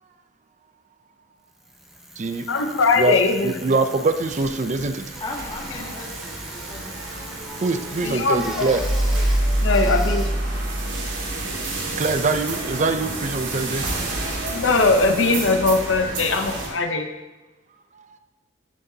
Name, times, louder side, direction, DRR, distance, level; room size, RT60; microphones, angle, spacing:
Bicycle, 1.5-11.6, equal, ahead, 0.8 m, -40 dB
voice 1, 2.5-3.6 8.0-8.7 9.6-10.2 14.5-17.1, left 3 dB, 75° left, 7 dB, 0.7 m, -20 dB
voice 2, 3.4-5.0 7.6-8.8 12.0-13.8, right 3 dB, 40° right, 9 dB, 0.5 m, -23 dB
sound 1, 4.2-16.7, right 2 dB, 80° right, 1.9 m, -31 dB
voice 3, 5.2-7.0 9.7-10.2, left 2 dB, 20° left, 0 dB, 1.4 m, -37 dB
sound 2, 8.6-11.8, right 1 dB, 60° right, 1.9 m, -24 dB
13.5 x 7.5 x 2.8 m, 1.1 s
head